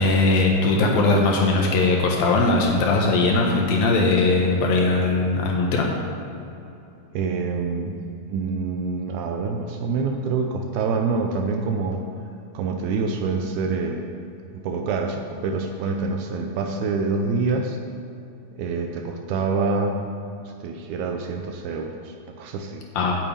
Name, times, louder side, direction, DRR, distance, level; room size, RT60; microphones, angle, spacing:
voice 1, 0.0-5.9 23.0-23.1, left 3 dB, 70° left, 0 dB, 2.5 m, -20 dB
voice 2, 7.1-8.0 8.3-12.1 12.5-14.0 14.5-17.8 18.6-20.0 20.6-22.8, right 4 dB, 80° right, 4 dB, 2.4 m, -26 dB
8.4 x 7.1 x 8.5 m, 2.8 s
omnidirectional pair, 4.8 m